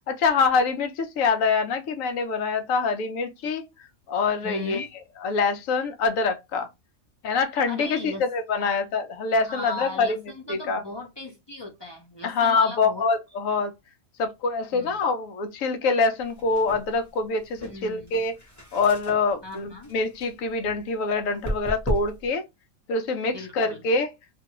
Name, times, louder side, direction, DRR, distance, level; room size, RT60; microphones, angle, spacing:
voice 1, 0.1-3.6 4.1-4.9 5.2-6.7 7.2-10.2 10.5-10.8 12.2-13.7 14.2-18.4 18.7-22.4 22.9-24.1, left 4 dB, 75° left, 1.0 m, -25 dB
voice 2, 4.4-4.9 7.7-8.2 8.6-8.8 9.4-13.0 14.7-15.0 17.6-18.2 19.4-19.9 23.3-23.8, left 2 dB, 35° left, 0.4 m, -38 dB
sound 1, 16.2-22.3, equal, 15° left, 0.8 m, -36 dB
2.5 x 2.3 x 2.8 m
omnidirectional pair, 1.4 m